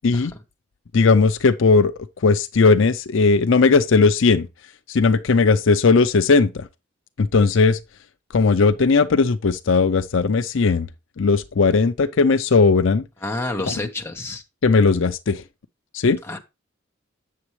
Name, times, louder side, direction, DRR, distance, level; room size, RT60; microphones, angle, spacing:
voice 1, 0.9-1.9 2.2-4.5 4.9-6.7 7.2-7.8 8.3-10.9 11.2-13.0 13.7-13.8 14.6-15.4 15.9-16.2, left 4 dB, 65° left, 0.5 m, -17 dB
voice 2, 13.2-14.4 16.2-16.4, left 2 dB, 10° left, 1.0 m, -29 dB
8.5 x 6.9 x 3.1 m
head